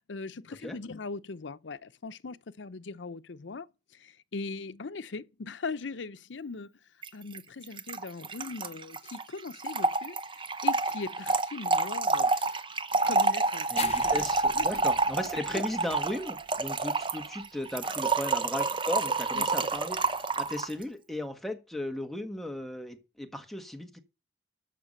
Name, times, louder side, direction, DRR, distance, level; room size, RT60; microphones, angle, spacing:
voice 1, 0.0-3.7 3.9-6.7 7.1-12.6 13.1-14.3 14.5-14.8 19.3-19.7, left 4 dB, 85° left, 0.7 m, -40 dB
Trickle dribble / Fill (with liquid), 7.0-7.1 7.3-7.4 7.6-20.7, right 3 dB, 25° right, 0.8 m, -28 dB
voice 2, 13.7-24.0, left 1 dB, ahead, 1.5 m, -36 dB
sound 1, 13.8-20.9, left 7 dB, 35° left, 0.8 m, -46 dB
13.0 x 5.9 x 6.6 m
head